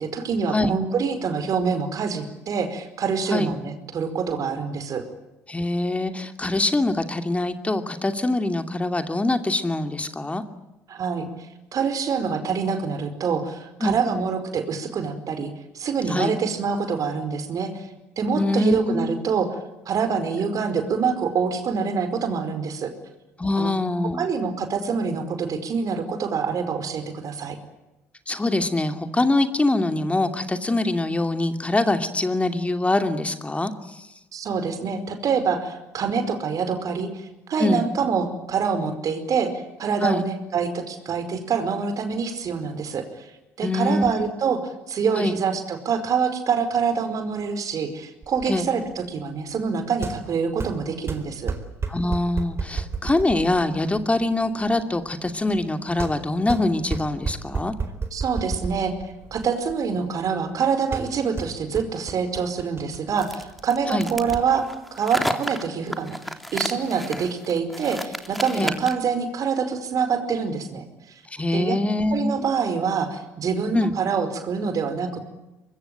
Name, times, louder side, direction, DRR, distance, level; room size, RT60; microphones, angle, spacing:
voice 1, 0.0-5.0 10.9-11.3 11.7-17.9 18.2-19.5 19.9-22.9 23.6-23.7 24.2-27.6 34.3-43.3 43.6-44.6 44.9-51.5 58.1-58.9 59.3-64.7 65.0-66.2 66.5-70.9 71.5-71.7 72.1-75.3, right 6 dB, 50° right, 9 dB, 4.8 m, -26 dB
voice 2, 5.5-10.4 13.8-14.0 16.1-16.4 18.4-19.1 23.4-24.3 28.3-34.1 37.6-37.8 40.0-40.2 43.6-44.1 45.2-45.4 48.5-48.7 51.9-57.7 63.9-64.1 68.6-68.8 71.3-72.3 73.7-73.9, left 2 dB, 15° left, 7 dB, 2.7 m, -24 dB
sound 1, 48.2-64.4, right 4 dB, 35° right, 4.3 m, -34 dB
sound 2, 63.2-69.1, equal, ahead, 3.4 m, -32 dB
24.5 x 22.0 x 9.1 m, 0.99 s
hypercardioid pair, 55°, 7 cm